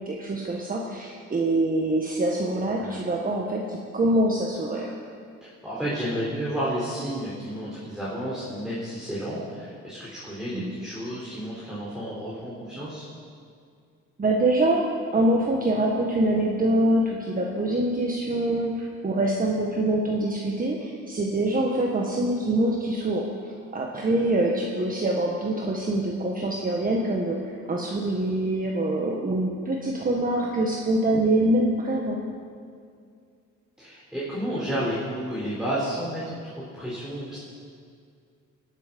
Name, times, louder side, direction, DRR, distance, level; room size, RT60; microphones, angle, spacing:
voice 1, 0.0-4.9 10.5-10.7 14.2-14.8 15.1-23.2 23.7-32.2, right 1 dB, 30° right, -1 dB, 1.5 m, -25 dB
voice 2, 5.4-13.1 33.8-37.4, equal, ahead, -9 dB, 4.0 m, -31 dB
18.0 x 8.3 x 5.3 m, 2.2 s
cardioid pair, 90°, 30 cm